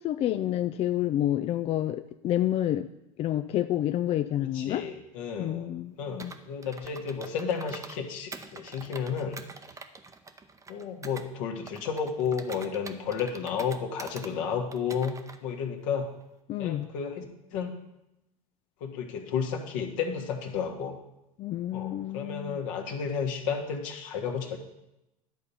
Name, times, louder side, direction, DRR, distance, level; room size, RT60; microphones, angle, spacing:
voice 1, 0.0-2.9 3.2-4.8 5.4-6.4 16.5-16.9 21.4-22.6, left 12 dB, 35° left, 9 dB, 0.4 m, -29 dB
voice 2, 4.5-5.7 6.0-9.4 10.7-15.1 15.4-16.1 16.6-17.2 17.5-17.8 18.8-21.0 21.7-24.6, left 6 dB, 60° left, 2 dB, 1.6 m, -32 dB
Computer keyboard, 6.2-8.0 8.3-11.3 11.7-14.3 14.7-15.4, right 4 dB, 15° right, 0.8 m, -45 dB
11.0 x 4.1 x 7.0 m, 0.90 s
hypercardioid pair, 80°, 18 cm